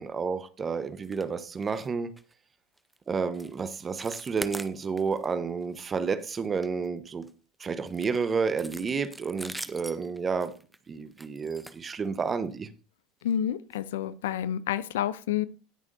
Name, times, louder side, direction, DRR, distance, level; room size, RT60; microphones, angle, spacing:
voice 1, 0.0-2.1 3.1-7.2 7.6-10.5 10.9-12.7, right 5 dB, 25° right, 0.9 m, -30 dB
sound 1, 1.0-1.3 1.6-1.9 2.2-2.3 2.8-3.0 3.3-3.6 3.8-5.3 5.6-5.8 6.2-7.3 7.9-12.5 13.2-13.4 13.7-13.8 14.3-14.4, right 1 dB, 5° right, 0.7 m, -43 dB
voice 2, 13.2-15.5, left 10 dB, 75° left, 0.5 m, -29 dB
17.5 x 6.2 x 2.6 m
hypercardioid pair, 80°, 0 cm